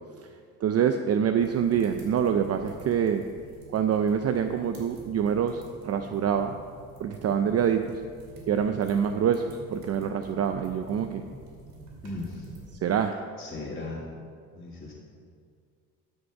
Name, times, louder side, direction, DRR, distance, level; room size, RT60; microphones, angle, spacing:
voice 1, 0.6-3.2 3.7-6.5 7.0-8.0 8.5-11.2 12.8-13.2, right 8 dB, 45° right, 8 dB, 0.5 m, -26 dB
sound 1, 1.4-12.7, right 2 dB, 75° right, 2.8 m, -48 dB
voice 2, 12.0-12.5 13.4-14.0 14.5-14.9, left 2 dB, 25° left, -8 dB, 2.1 m, -37 dB
11.5 x 5.3 x 5.8 m, 2.2 s
supercardioid pair, 80°, 34 cm